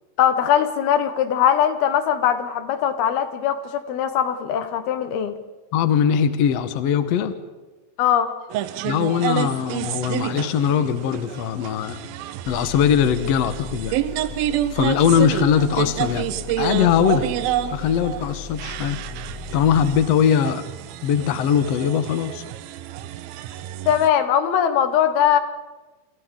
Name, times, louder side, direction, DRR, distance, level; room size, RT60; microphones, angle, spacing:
voice 1, 0.2-5.3 8.0-8.3 23.9-25.4, left 9 dB, 85° left, 9 dB, 3.2 m, -20 dB
voice 2, 5.7-7.3 8.8-12.0 12.5-13.9 14.7-16.3 16.6-17.3 17.7-19.0 19.5-20.6 21.0-22.4, left 8 dB, 65° left, 10 dB, 1.8 m, -20 dB
sound 1, 8.5-24.1, right 12 dB, 80° right, 2.6 m, -29 dB
sound 2, 12.4-20.1, left 7 dB, 5° left, 2.0 m, -38 dB
28.0 x 25.5 x 3.8 m, 1.2 s
omnidirectional pair, 4.3 m